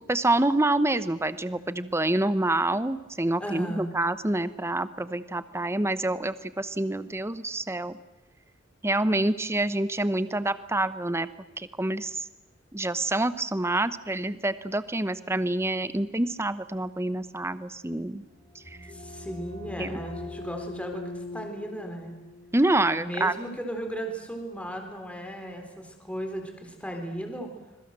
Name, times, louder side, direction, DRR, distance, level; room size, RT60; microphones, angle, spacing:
voice 1, 0.0-8.0 8.8-11.3 11.6-12.2 12.7-18.2 19.8-20.0 22.5-23.3, right 2 dB, 15° right, 14 dB, 0.9 m, -27 dB
voice 2, 3.4-4.0 18.9-22.2 23.0-27.5, equal, 5° left, 3 dB, 3.8 m, -36 dB
sound 1, 18.3-23.9, left 2 dB, 25° left, 4.9 m, -42 dB
26.0 x 22.5 x 7.5 m, 1.0 s
head